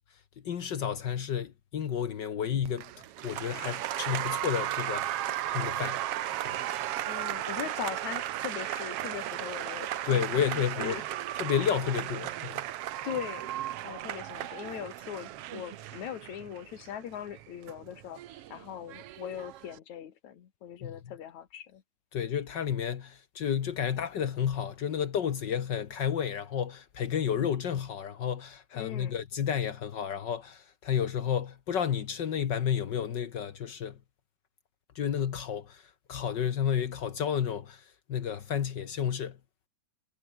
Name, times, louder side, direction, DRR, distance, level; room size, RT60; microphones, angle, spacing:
voice 1, 0.4-2.9 3.2-6.0 6.4-6.6 10.0-11.0 11.3-12.6 20.8-20.9 22.1-34.0 34.9-39.4, left 8 dB, 80° left, 0.9 m, -31 dB
Applause, 2.6-19.8, right 13 dB, 90° right, 1.3 m, -35 dB
voice 2, 7.1-11.0 13.0-13.5 13.8-18.2 18.5-21.8 28.7-29.2, left 10 dB, 60° left, 2.9 m, -40 dB
omnidirectional pair, 4.0 m